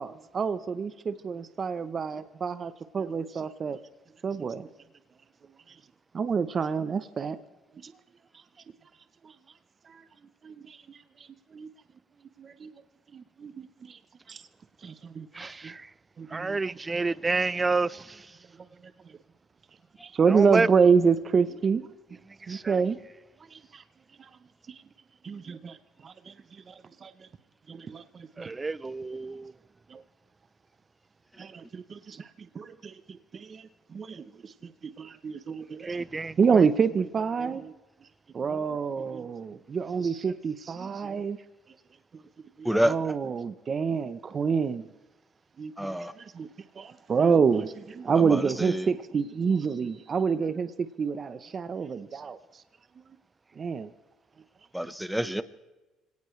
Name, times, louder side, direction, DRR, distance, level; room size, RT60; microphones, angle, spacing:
voice 1, 0.0-3.8 4.2-4.7 6.1-7.4 7.8-7.9 9.2-9.3 9.9-10.0 10.4-11.3 11.5-11.7 12.4-12.7 13.1-14.0 14.3-14.4 14.8-15.7 16.2-16.6 20.0-21.9 22.5-23.0 23.5-23.8 24.2-24.3 24.7-24.8 25.2-25.8 26.0-27.1 27.7-28.5 29.9-30.0 31.4-32.3 32.5-36.0 36.4-37.7 38.3-41.4 42.6-44.9 45.6-46.5 46.8-52.4 53.6-53.9, right 5 dB, 35° right, 0.8 m, -28 dB
voice 2, 15.3-15.9 16.3-18.4 20.3-20.7 22.3-22.8 28.4-29.5 35.8-36.7, right 3 dB, 20° right, 0.5 m, -29 dB
voice 3, 42.6-43.0 45.8-46.1 48.2-48.9 54.7-55.4, equal, ahead, 1.1 m, -28 dB
25.0 x 18.0 x 3.3 m
cardioid pair, 120°, 0 cm